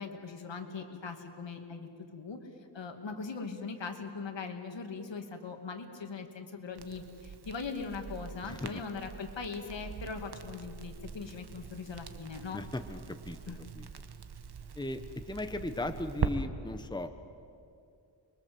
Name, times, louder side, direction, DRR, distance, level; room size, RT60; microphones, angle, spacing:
voice 1, 0.0-2.4 2.7-12.6 13.5-13.6, left 4 dB, 75° left, 4 dB, 2.6 m, -40 dB
Crackle, 6.7-16.3, right 7 dB, 60° right, 1.5 m, -42 dB
voice 2, 8.4-8.8 12.5-13.9 14.7-17.1, left 2 dB, 10° left, 8 dB, 1.1 m, -37 dB
29.5 x 23.0 x 7.9 m, 2.6 s
wide cardioid pair, 105°, 45 cm